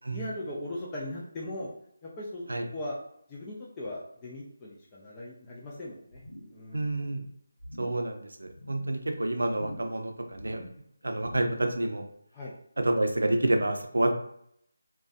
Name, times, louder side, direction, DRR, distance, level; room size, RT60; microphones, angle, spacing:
voice 1, 0.1-1.7 2.0-3.0 3.3-6.2 6.5-7.0 12.3-12.5, left 1 dB, 15° left, -5 dB, 0.4 m, -39 dB
sound 1, 6.1-6.6 6.9-7.2 7.6-8.1 8.5-8.9 9.5-10.0 10.3-10.8 11.2-11.8 12.1-12.2, equal, 90° left, 0.7 m, -45 dB
voice 2, 6.7-7.2 7.8-10.6 11.0-12.0 12.8-14.1, right 1 dB, 90° right, 4 dB, 0.5 m, -28 dB
2.5 x 2.2 x 2.3 m, 0.70 s
figure-of-eight pair, 170°, 0 cm